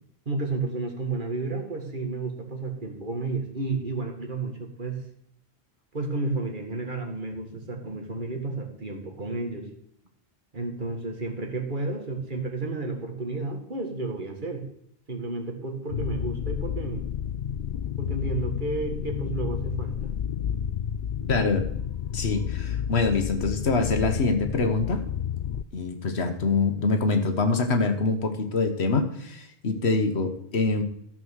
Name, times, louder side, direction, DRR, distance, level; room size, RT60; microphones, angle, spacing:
voice 1, 0.3-5.0 5.9-9.7 10.5-14.6 15.1-17.0 18.0-20.1, right 3 dB, 50° right, 3 dB, 2.0 m, -32 dB
sound 1, 15.9-25.6, left 9 dB, 55° left, 0.6 m, -31 dB
voice 2, 21.3-21.6 22.1-25.0 25.7-30.8, left 3 dB, 75° left, 7 dB, 1.5 m, -25 dB
13.0 x 6.1 x 6.4 m, 0.71 s
omnidirectional pair, 1.1 m